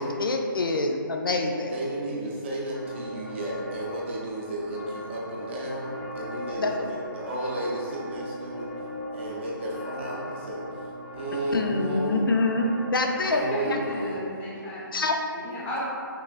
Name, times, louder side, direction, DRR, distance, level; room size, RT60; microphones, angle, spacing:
voice 1, 0.0-1.7 6.6-6.9 11.5-13.8 14.9-15.1, left 2 dB, 75° left, 3 dB, 0.4 m, -26 dB
voice 2, 1.7-8.7 9.1-10.7 11.1-12.3 13.2-14.2, right 1 dB, 30° right, -3 dB, 0.6 m, -33 dB
sound 1, 2.7-14.1, left 1 dB, 40° left, 1.1 m, -39 dB
voice 3, 13.2-14.8 15.3-15.8, left 1 dB, 10° left, -8 dB, 0.7 m, -34 dB
5.7 x 2.4 x 2.3 m, 2.4 s
figure-of-eight pair, 145°, 12 cm